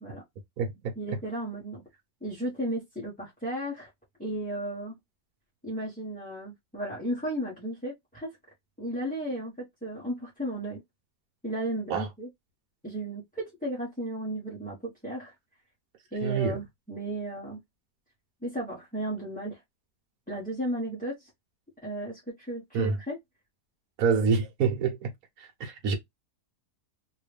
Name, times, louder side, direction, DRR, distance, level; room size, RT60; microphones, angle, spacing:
voice 1, 0.9-1.8 2.2-3.9 4.2-4.9 5.6-8.3 8.8-10.8 11.4-12.3 12.8-15.3 16.1-17.6 18.4-19.6 20.3-21.3 21.8-23.2, right 1 dB, 5° left, 1.0 m, -34 dB
voice 2, 16.2-16.6 22.7-22.9 24.0-25.1 25.4-25.9, right 5 dB, 65° right, 1.4 m, -26 dB
3.2 x 2.7 x 3.2 m
omnidirectional pair, 1.7 m